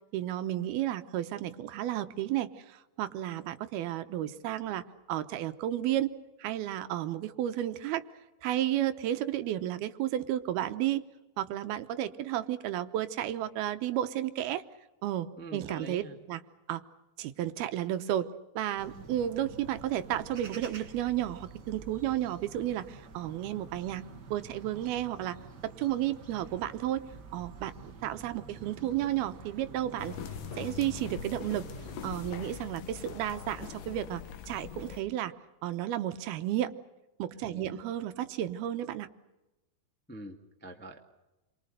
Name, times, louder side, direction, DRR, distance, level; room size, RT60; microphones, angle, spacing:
voice 1, 0.1-6.1 6.4-8.0 8.4-11.0 11.4-14.6 15.0-16.0 16.3-16.4 16.7-16.8 17.2-18.3 18.6-25.4 25.6-27.0 27.3-27.7 28.0-30.2 30.6-31.7 32.0-35.3 35.6-36.7 37.2-39.1, right 12 dB, 75° right, 11 dB, 2.9 m, -32 dB
voice 2, 15.4-16.2 37.4-37.8 40.1-41.0, right 1 dB, 10° left, 2 dB, 0.6 m, -45 dB
sound 1, 18.8-32.3, right 4 dB, 50° right, 1.2 m, -48 dB
sound 2, 30.0-35.0, left 9 dB, 65° left, 2.8 m, -42 dB
29.5 x 24.0 x 6.7 m, 1.0 s
omnidirectional pair, 4.5 m